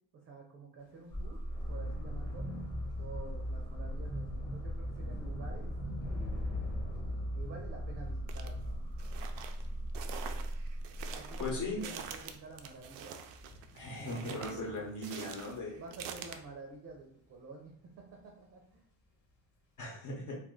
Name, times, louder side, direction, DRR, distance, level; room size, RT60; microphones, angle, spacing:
voice 1, 0.2-1.4 1.7-2.5 3.0-5.7 6.1-6.6 7.3-8.8 11.0-13.2 14.0-14.9 15.7-18.9, right 3 dB, 35° right, 1 dB, 0.6 m, -50 dB
Thunder / Rain, 0.9-17.5 17.8-18.3 18.5-18.7, left 1 dB, 25° left, 1.2 m, -48 dB
sound 1, 1.1-12.0, equal, 10° left, 0.7 m, -39 dB
sound 2, 8.3-8.5 9.0-16.4, right 7 dB, 75° right, 0.5 m, -46 dB
voice 2, 11.4-11.8 13.7-15.8 19.8-20.4, left 2 dB, 45° left, -2 dB, 1.0 m, -38 dB
2.5 x 2.5 x 3.7 m, 0.66 s
cardioid pair, 145°, 44 cm